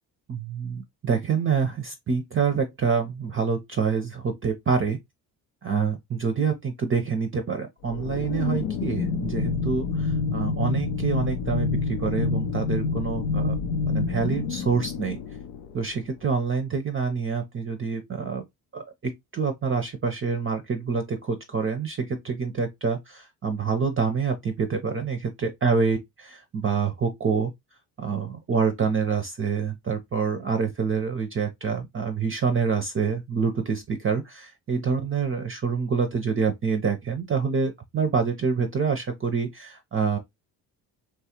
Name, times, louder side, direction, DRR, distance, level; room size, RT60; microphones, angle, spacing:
voice 1, 0.3-5.0 5.6-13.6 13.9-15.2 15.7-18.4 18.7-27.5 28.0-40.2, right 5 dB, 25° right, 0.6 m, -26 dB
sound 1, 7.8-16.1, left 4 dB, 75° left, 0.6 m, -28 dB
3.1 x 2.3 x 2.8 m
hypercardioid pair, 45°, 48 cm